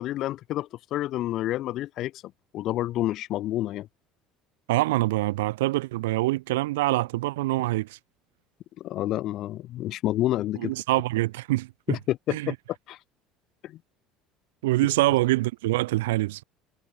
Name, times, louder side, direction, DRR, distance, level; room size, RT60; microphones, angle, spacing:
voice 1, 0.0-2.2 2.5-3.9 8.8-10.7 11.9-12.6 12.9-13.0 13.6-13.8, left 14 dB, 60° left, 5.6 m, -29 dB
voice 2, 4.7-8.0 10.6-12.0 12.3-12.5 14.6-16.4, right 18 dB, 85° right, 7.1 m, -25 dB
supercardioid pair, 85°, 0 cm